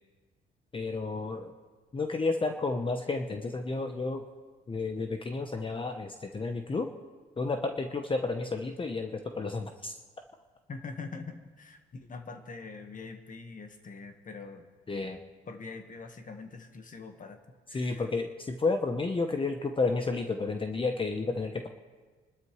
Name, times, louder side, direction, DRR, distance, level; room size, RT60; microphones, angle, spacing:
voice 1, 0.7-1.5 1.9-4.2 4.7-6.9 7.4-9.9 14.9-15.2 17.7-21.7, left 3 dB, 25° left, 5 dB, 0.9 m, -31 dB
voice 2, 10.7-14.6 15.5-17.4 17.7-18.1, left 4 dB, 40° left, 6 dB, 1.5 m, -43 dB
28.0 x 12.5 x 3.2 m, 1.4 s
cardioid pair, 90°, 20 cm